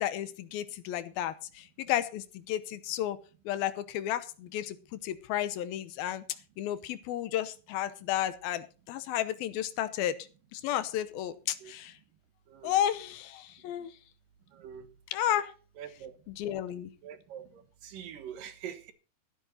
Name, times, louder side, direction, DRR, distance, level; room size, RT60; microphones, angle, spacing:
voice 1, 0.0-3.2 3.5-4.8 5.0-6.2 6.6-10.2 10.5-11.9 12.6-13.9 15.1-15.5 16.3-16.9, left 12 dB, 80° left, 2.6 m, -32 dB
voice 2, 14.5-14.9 15.8-16.1 17.0-18.9, right 9 dB, 70° right, 2.8 m, -44 dB
15.0 x 11.5 x 4.3 m
omnidirectional pair, 4.4 m